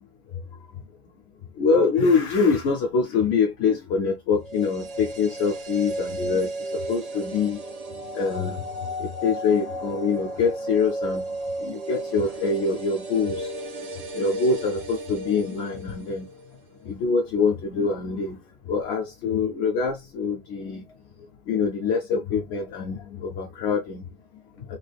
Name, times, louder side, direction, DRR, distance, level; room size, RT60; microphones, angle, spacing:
voice 1, 1.6-6.5 6.9-7.6 8.1-8.6 9.0-11.2 11.6-13.5 14.1-16.3 16.9-18.4 18.7-20.8 21.5-24.0, left 5 dB, 85° left, 0.9 m, -24 dB
sound 1, 4.4-16.5 16.8-16.9, right 1 dB, 45° right, 0.6 m, -34 dB
3.3 x 3.3 x 2.3 m
omnidirectional pair, 1.1 m